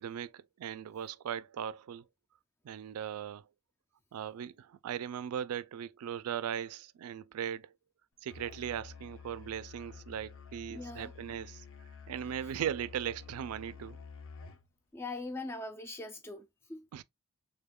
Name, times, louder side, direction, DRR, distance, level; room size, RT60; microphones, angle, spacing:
voice 1, 0.0-2.0 2.6-3.4 4.1-7.7 8.2-11.6 12.1-14.0 16.9-17.0, right 9 dB, 75° right, 0.3 m, -38 dB
Musical instrument, 8.3-14.7, left 5 dB, 65° left, 0.7 m, -50 dB
voice 2, 10.7-11.1 14.9-16.9, left 2 dB, 10° left, 0.3 m, -41 dB
3.6 x 2.3 x 3.5 m
head